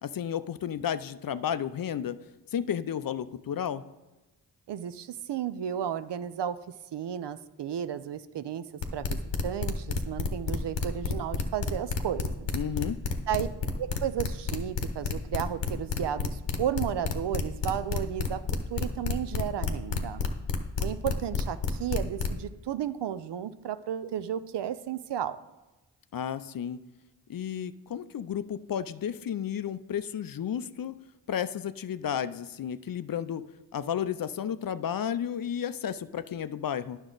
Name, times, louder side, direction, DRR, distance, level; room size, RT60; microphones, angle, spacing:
voice 1, 0.0-2.2 2.5-3.8 12.5-13.0 26.1-26.8 27.3-31.0 31.3-33.4 33.7-37.0, left 9 dB, 50° left, 13 dB, 0.5 m, -32 dB
voice 2, 4.7-6.6 6.9-8.6 8.9-12.5 13.3-13.5 13.8-18.4 18.7-20.2 20.8-25.4, right 10 dB, 70° right, 13 dB, 0.5 m, -33 dB
sound 1, 8.8-22.4, left 6 dB, 75° left, 0.9 m, -29 dB
9.7 x 6.1 x 3.9 m, 1.1 s
cardioid pair, 45°, 44 cm